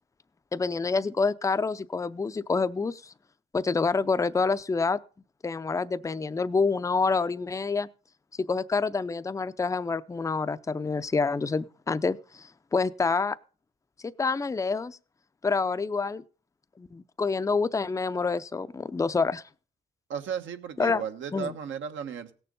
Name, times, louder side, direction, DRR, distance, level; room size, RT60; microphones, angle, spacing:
voice 1, 0.5-3.1 3.5-5.0 5.4-7.9 8.5-13.4 14.0-15.0 15.4-16.2 16.8-19.4 20.8-21.0 21.3-21.5, left 4 dB, 15° left, 0.5 m, -27 dB
voice 2, 20.1-22.3, right 7 dB, 75° right, 1.3 m, -35 dB
17.0 x 6.8 x 5.4 m
cardioid pair, 90°, 20 cm